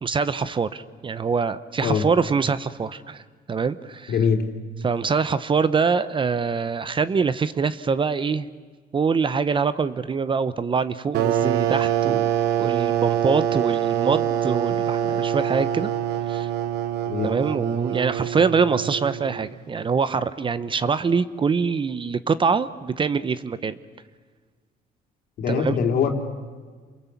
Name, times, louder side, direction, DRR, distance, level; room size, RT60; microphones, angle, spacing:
voice 1, 0.0-3.2 3.5-4.1 4.8-8.5 8.9-12.3 12.6-15.9 16.3-16.5 17.2-23.8 25.5-25.8, right 5 dB, 30° right, 15 dB, 0.9 m, -24 dB
voice 2, 4.1-4.4 17.0-17.3 25.4-26.1, left 6 dB, 65° left, 4 dB, 3.5 m, -22 dB
sound 1, 11.1-19.5, right 10 dB, 85° right, 1.3 m, -25 dB
28.5 x 22.0 x 8.4 m, 1.5 s
cardioid pair, 110°, 17 cm